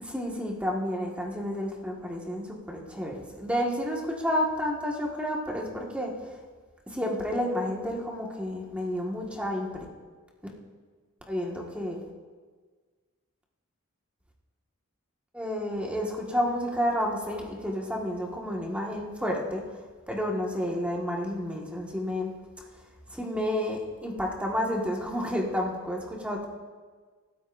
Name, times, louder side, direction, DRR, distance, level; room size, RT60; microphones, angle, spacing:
voice 1, 0.1-6.1 6.9-9.7 11.3-12.0 15.3-19.6 20.1-22.3 23.1-26.5, equal, 5° right, -2 dB, 1.7 m, -30 dB
24.5 x 13.5 x 2.6 m, 1.5 s
head